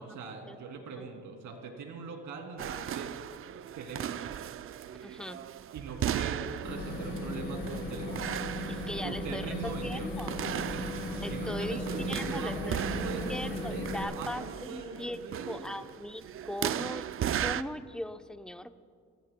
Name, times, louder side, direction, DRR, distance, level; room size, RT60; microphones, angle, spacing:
voice 1, 0.0-3.1 3.7-4.2 5.7-8.3 9.0-10.1 10.7-10.8 11.3-15.9, right 4 dB, 80° right, 2 dB, 2.8 m, -41 dB
sound 1, 2.6-17.6, right 10 dB, 45° right, 0.4 m, -37 dB
voice 2, 5.0-5.4 8.7-9.5 9.8-10.3 11.2-12.8 13.3-15.2 15.5-17.1 17.4-18.8, left 1 dB, 5° left, 8 dB, 0.7 m, -39 dB
sound 2, 6.6-14.0, left 1 dB, 35° left, 4.6 m, -36 dB
25.5 x 18.0 x 2.3 m, 2.1 s
cardioid pair, 90°, 30 cm